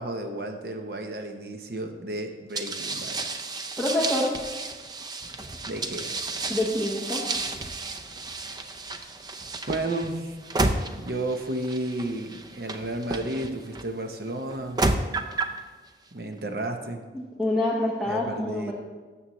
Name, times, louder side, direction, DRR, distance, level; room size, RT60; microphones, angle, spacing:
voice 1, 0.0-3.2 5.7-6.1 9.7-10.4 11.0-14.8 16.1-17.0 18.1-18.7, right 1 dB, 55° right, 5 dB, 0.8 m, -32 dB
sound 1, 2.5-13.8 14.5-15.6, right 2 dB, 20° right, 0.4 m, -31 dB
voice 2, 3.8-4.3 6.5-7.2 17.1-18.7, left 1 dB, 5° right, -3 dB, 0.9 m, -26 dB
13.0 x 7.1 x 3.1 m, 1.4 s
head